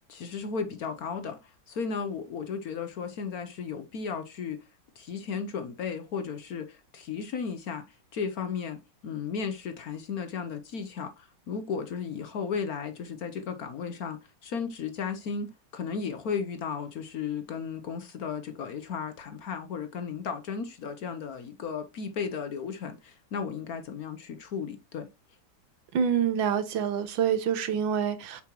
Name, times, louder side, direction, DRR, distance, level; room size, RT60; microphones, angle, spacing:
voice 1, 0.1-4.6 5.0-25.1, left 6 dB, 60° left, 1.1 m, -35 dB
voice 2, 25.9-28.4, right 8 dB, 80° right, 1.7 m, -26 dB
7.4 x 5.8 x 3.0 m
omnidirectional pair, 2.1 m